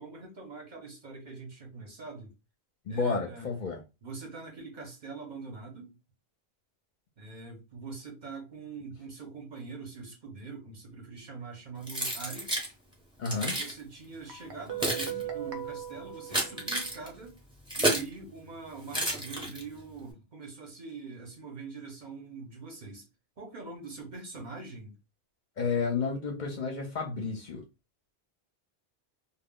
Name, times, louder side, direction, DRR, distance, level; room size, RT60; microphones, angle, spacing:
voice 1, 0.0-2.3 2.9-3.5 4.0-6.0 7.2-12.6 13.3-17.4 17.7-23.1 23.4-25.0, right 4 dB, 50° right, 0.8 m, -43 dB
voice 2, 2.9-3.8 13.2-13.6 25.6-27.6, left 5 dB, 55° left, 0.6 m, -31 dB
Keys jangling, 11.9-12.7 13.3-13.7 14.5-18.2 18.9-19.8, right 1 dB, 5° right, 0.6 m, -31 dB
Guitar, 14.3-17.1, right 10 dB, 85° right, 0.9 m, -39 dB
2.1 x 2.1 x 3.6 m
omnidirectional pair, 1.1 m